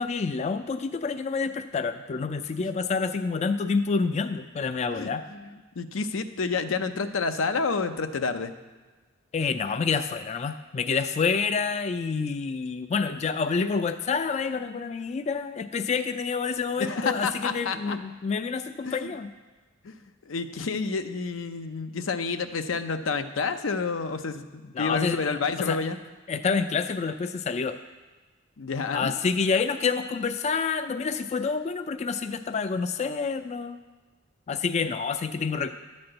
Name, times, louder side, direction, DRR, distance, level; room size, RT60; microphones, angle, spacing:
voice 1, 0.0-5.2 9.3-19.3 24.7-25.8 26.3-27.8 28.9-33.8 34.5-35.7, left 5 dB, 35° left, 9 dB, 0.3 m, -28 dB
voice 2, 4.9-5.5 5.8-8.5 16.8-18.0 18.9-19.1 19.8-20.0 20.3-24.4 24.8-26.0 28.6-29.2, left 4 dB, 85° left, 8 dB, 0.6 m, -29 dB
11.0 x 4.3 x 7.7 m, 1.3 s
head